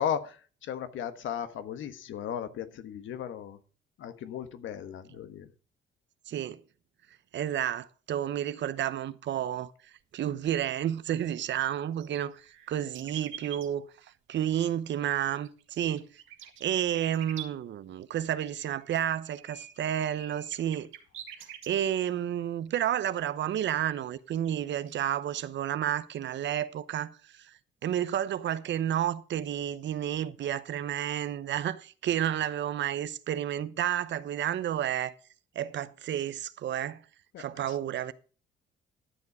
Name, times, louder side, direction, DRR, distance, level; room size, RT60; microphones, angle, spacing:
voice 1, 0.0-3.6 4.0-5.5 37.3-37.7, left 9 dB, 80° left, 1.3 m, -36 dB
voice 2, 6.3-6.6 7.3-9.7 10.1-12.4 12.7-13.9 14.3-16.1 16.6-20.9 21.4-27.5 27.8-35.1 35.5-37.0 37.4-38.1, right 10 dB, 65° right, 0.8 m, -31 dB
sound 1, 11.2-11.3 11.5-13.7 15.4-17.5 18.7-21.7 22.4-22.5 23.7-23.8 24.2-24.5 24.8-25.1, right 9 dB, 85° right, 2.1 m, -45 dB
13.0 x 7.3 x 4.9 m
cardioid pair, 90°, 20 cm